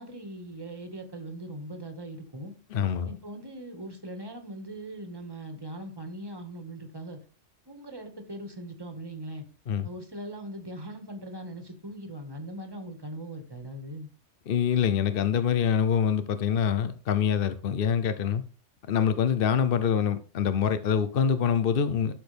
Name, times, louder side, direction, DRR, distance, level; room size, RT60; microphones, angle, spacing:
voice 1, 0.0-2.5 3.0-7.2 7.7-9.4 9.8-14.1, right 1 dB, 20° right, 5 dB, 1.8 m, -40 dB
voice 2, 2.7-3.2 9.7-9.9 14.5-18.4 18.9-22.1, left 7 dB, 55° left, 12 dB, 0.8 m, -25 dB
12.0 x 6.8 x 3.4 m, 0.35 s
omnidirectional pair, 1.3 m